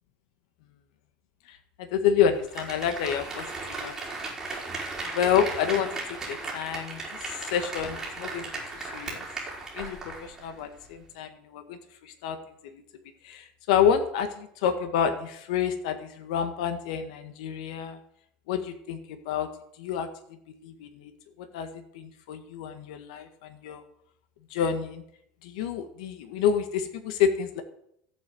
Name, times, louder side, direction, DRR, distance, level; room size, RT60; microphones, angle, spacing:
voice 1, 1.5-3.9 5.1-5.9 6.3-9.2 9.8-12.4 12.6-12.8 13.2-18.0 18.5-19.5 19.8-20.1 20.6-21.1 21.4-23.8 24.5-25.0 25.4-27.6, left 8 dB, 85° left, 8 dB, 1.7 m, -28 dB
Applause, 2.3-10.5 10.8-10.9, right 3 dB, 15° right, 4.7 m, -36 dB
14.5 x 8.5 x 7.9 m, 0.71 s
cardioid pair, 160°, 4 cm